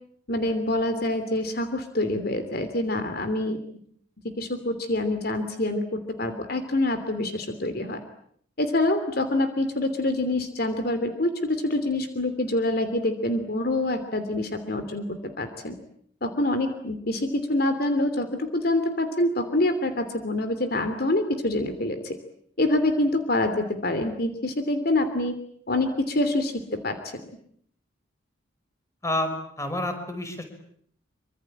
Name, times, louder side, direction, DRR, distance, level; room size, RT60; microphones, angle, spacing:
voice 1, 0.3-3.6 4.4-8.0 8.6-15.8 16.2-22.2 22.6-25.4 25.7-27.1, left 1 dB, 50° left, 9 dB, 3.0 m, -26 dB
voice 2, 29.0-30.4, left 1 dB, 15° left, 7 dB, 5.4 m, -29 dB
26.0 x 25.5 x 8.9 m, 0.66 s
head